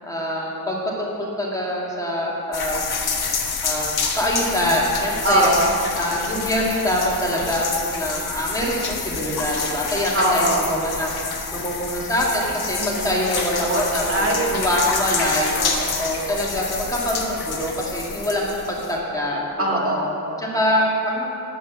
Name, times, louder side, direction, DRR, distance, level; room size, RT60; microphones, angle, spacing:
voice 1, 0.0-2.8 3.6-5.5 5.9-11.1 11.5-15.6 16.0-19.4 19.7-19.9 20.4-21.3, equal, 10° left, -5 dB, 2.1 m, -24 dB
sound 1, 2.5-19.0, left 5 dB, 90° left, 1.1 m, -28 dB
voice 2, 5.2-5.8 10.1-10.7 12.8-13.8 14.1-14.7 15.5-16.1 19.6-20.4, right 1 dB, 35° right, -2 dB, 1.8 m, -23 dB
9.1 x 8.0 x 6.0 m, 2.6 s
wide cardioid pair, 125°, 37 cm